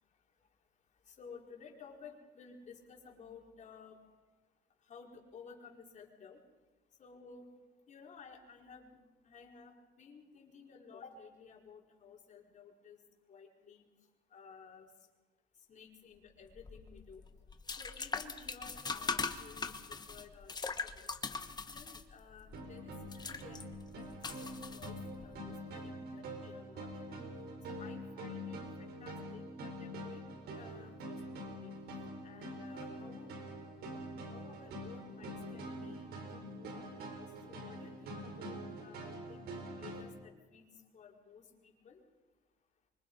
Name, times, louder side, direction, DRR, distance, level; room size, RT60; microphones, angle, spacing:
voice 1, 1.1-4.0 4.8-6.4 7.0-7.5 7.9-9.0 9.2-13.0 13.3-13.8 14.3-14.9 15.7-17.2 17.8-21.1 21.7-23.6 23.9-27.2 27.7-30.2 30.5-31.8 32.2-33.4 34.3-36.9 37.1-42.0, left 5 dB, 45° left, -1 dB, 4.9 m, -55 dB
sound 1, 16.5-25.4, left 4 dB, 25° left, 1.4 m, -41 dB
sound 2, 22.5-40.0, equal, 70° right, 5.1 m, -45 dB
25.0 x 24.5 x 5.6 m, 1.2 s
cardioid pair, 110°, 17 cm